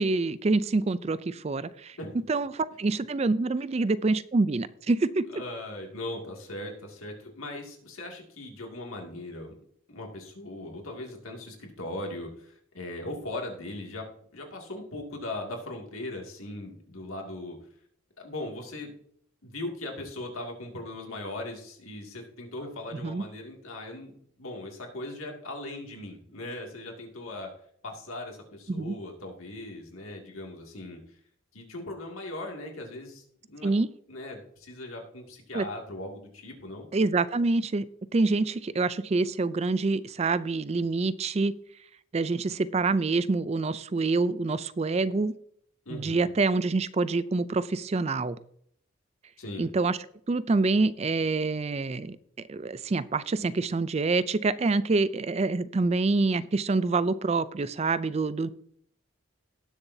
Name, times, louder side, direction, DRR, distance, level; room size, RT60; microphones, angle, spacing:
voice 1, 0.0-2.0 2.3-5.2 23.0-23.2 28.7-29.0 33.6-33.9 35.5-35.7 36.9-37.9 38.1-41.5 42.1-45.4 45.9-48.4 49.6-50.0 50.3-52.2 52.5-58.5, right 3 dB, 30° right, 16 dB, 0.4 m, -26 dB
voice 2, 5.3-9.5 9.9-14.1 14.3-17.6 18.2-18.9 19.4-24.1 24.4-27.5 27.8-31.0 31.5-33.7 34.1-36.9 45.9-46.3 49.4-49.7, left 1 dB, 90° left, 1 dB, 2.4 m, -39 dB
18.5 x 6.9 x 2.7 m, 0.68 s
head